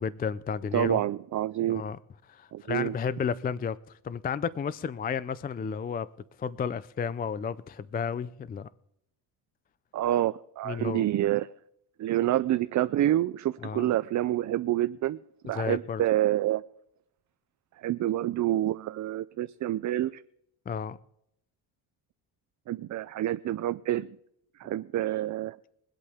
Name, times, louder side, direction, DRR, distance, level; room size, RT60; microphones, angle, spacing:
voice 1, 0.0-1.0 1.7-2.0 2.3-6.1 6.4-8.7 10.7-11.1 13.6-13.9 15.5-16.0 20.7-21.0, left 6 dB, 20° left, 0.4 m, -32 dB
voice 2, 0.7-1.9 2.5-2.9 9.9-11.5 12.0-15.2 15.4-16.6 17.8-20.2 22.7-24.1 24.6-25.6, right 13 dB, 45° right, 0.4 m, -27 dB
22.5 x 8.3 x 3.5 m
cardioid pair, 105°, 43 cm